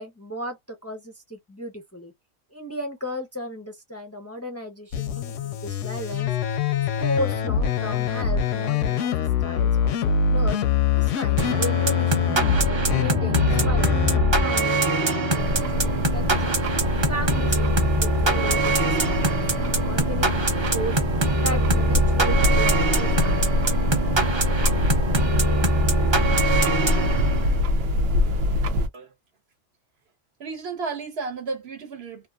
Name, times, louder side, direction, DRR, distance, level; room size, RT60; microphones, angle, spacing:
voice 1, 0.0-2.1 2.5-6.3 6.8-10.6 10.9-16.6 17.1-20.9 21.4-23.9, equal, 20° left, 0.5 m, -35 dB
sound 1, 4.9-14.4, left 7 dB, 80° left, 0.9 m, -24 dB
sound 2, 11.4-27.7, right 1 dB, 30° right, 0.6 m, -23 dB
sound 3, 15.4-28.9, left 1 dB, 85° right, 1.0 m, -25 dB
voice 2, 30.4-32.3, right 4 dB, 60° right, 1.0 m, -33 dB
2.8 x 2.4 x 2.3 m
omnidirectional pair, 1.3 m